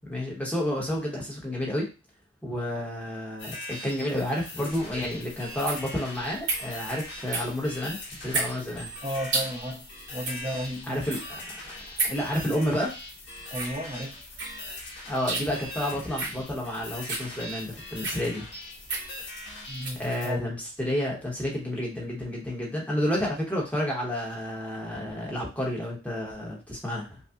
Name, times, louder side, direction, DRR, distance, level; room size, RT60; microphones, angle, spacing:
voice 1, 0.1-1.9 2.4-8.9 10.9-11.4 12.0-12.9 15.1-18.5 20.0-27.2, left 1 dB, 5° left, -3 dB, 0.9 m, -30 dB
sound 1, 3.4-20.3, left 1 dB, 60° left, 1.4 m, -41 dB
sound 2, 4.7-20.0, right 3 dB, 60° right, 1.0 m, -34 dB
voice 2, 9.0-11.1 13.5-14.2 19.7-20.5, equal, 25° right, -2 dB, 0.4 m, -34 dB
5.2 x 2.0 x 2.4 m, 0.31 s
head